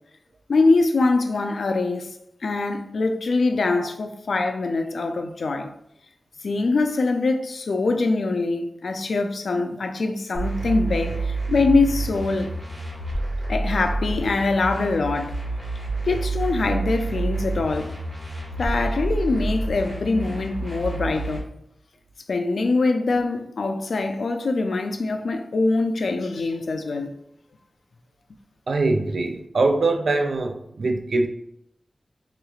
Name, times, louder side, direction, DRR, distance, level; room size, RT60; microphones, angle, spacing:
voice 1, 0.5-2.1 2.4-5.7 6.4-12.5 13.5-15.3 16.0-17.9 18.6-21.5 22.3-27.1, left 3 dB, 80° left, 0.4 m, -23 dB
sound 1, 10.3-21.4, right 2 dB, 15° right, 1.4 m, -28 dB
voice 2, 28.7-31.3, right 3 dB, 75° right, 0.4 m, -22 dB
3.5 x 3.0 x 2.4 m
wide cardioid pair, 110°, 0 cm